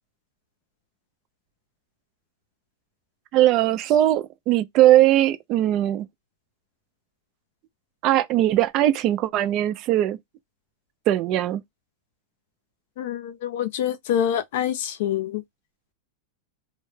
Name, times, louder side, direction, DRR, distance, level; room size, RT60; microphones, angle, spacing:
voice 1, 3.3-6.1 8.0-10.2 11.1-11.6, right 13 dB, 30° right, 0.3 m, -20 dB
voice 2, 13.0-15.4, left 10 dB, 55° left, 0.4 m, -26 dB
2.1 x 2.0 x 3.1 m
supercardioid pair, 165°, 0 cm